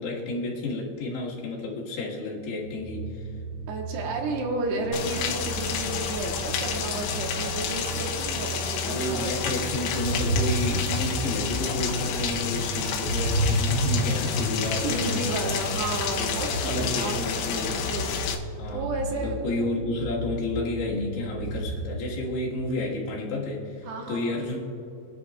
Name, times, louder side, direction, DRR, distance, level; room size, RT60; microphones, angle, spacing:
voice 1, 0.0-3.3 8.8-15.3 16.2-17.9 18.6-24.6, left 2 dB, 70° left, -4 dB, 3.6 m, -31 dB
sound 1, 2.6-22.1, right 1 dB, 45° right, 1.7 m, -32 dB
voice 2, 3.7-9.6 14.8-17.2 17.6-18.2 18.7-19.4 23.8-24.4, right 2 dB, 75° right, 1 dB, 3.1 m, -32 dB
Rain, 4.9-18.4, left 7 dB, 85° left, 3.3 m, -30 dB
25.5 x 10.0 x 2.4 m, 2.9 s
omnidirectional pair, 5.2 m